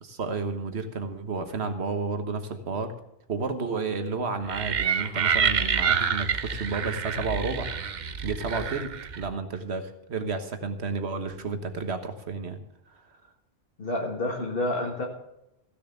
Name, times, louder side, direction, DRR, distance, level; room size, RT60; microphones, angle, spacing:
voice 1, 0.0-2.9 3.3-7.7 8.2-12.6 12.9-13.0, right 4 dB, 75° right, 8 dB, 1.5 m, -31 dB
sound 1, 4.5-9.3, right 6 dB, 45° right, 0.8 m, -27 dB
voice 2, 13.8-15.1, left 1 dB, 55° left, -1 dB, 1.9 m, -29 dB
15.0 x 7.0 x 6.8 m, 0.83 s
omnidirectional pair, 1.1 m